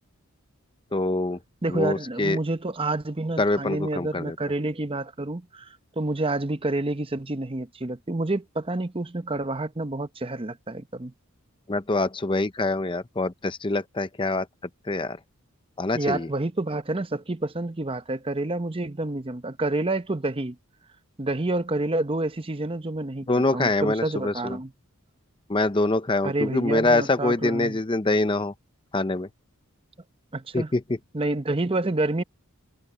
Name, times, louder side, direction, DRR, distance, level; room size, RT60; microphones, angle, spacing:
voice 1, 0.9-1.4 1.7-2.4 3.4-4.3 11.7-14.5 14.9-15.2 15.8-16.3 23.3-24.6 25.5-28.5 28.9-29.3 30.5-30.8, left 2 dB, 20° left, 0.7 m, -24 dB
voice 2, 1.6-11.1 15.9-20.6 21.2-24.7 26.2-27.8 30.3-30.7 31.1-32.2, right 2 dB, 25° right, 0.8 m, -28 dB
head